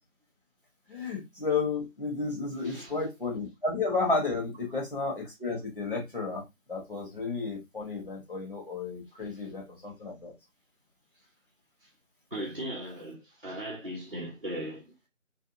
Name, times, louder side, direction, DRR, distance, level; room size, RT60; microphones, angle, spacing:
voice 1, 0.9-6.4 6.7-10.3, left 3 dB, 40° left, 1.2 m, -32 dB
voice 2, 2.6-3.1 12.3-14.8, right 1 dB, 45° right, 0.7 m, -38 dB
2.6 x 2.1 x 2.5 m
figure-of-eight pair, 175°, 40 cm